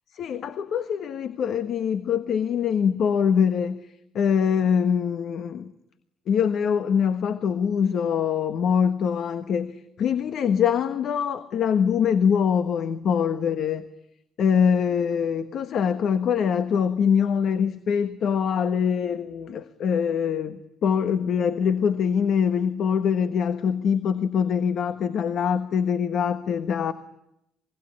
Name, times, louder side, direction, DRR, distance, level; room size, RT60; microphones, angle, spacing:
voice 1, 0.1-3.9 4.1-5.7 6.3-13.8 14.4-26.9, left 7 dB, 70° left, 10 dB, 1.3 m, -23 dB
26.0 x 21.5 x 9.9 m, 0.81 s
cardioid pair, 90°, 0 cm